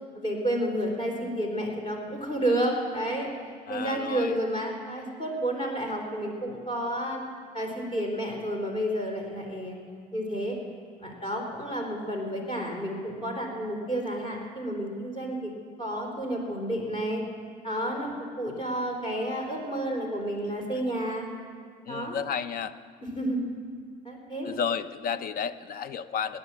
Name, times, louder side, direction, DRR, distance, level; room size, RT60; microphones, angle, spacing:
voice 1, 0.1-3.3 3.7-7.2 7.5-9.8 10.1-10.6 11.0-15.5 15.8-17.2 17.6-18.1 18.4-21.3 21.9-22.1 23.0-23.4 24.0-24.6, right 1 dB, 30° left, 1 dB, 3.9 m, -30 dB
voice 2, 3.7-4.4 21.8-22.7 24.4-26.4, left 7 dB, 60° left, 13 dB, 0.7 m, -32 dB
18.0 x 10.0 x 7.5 m, 2.1 s
cardioid pair, 110°, 17 cm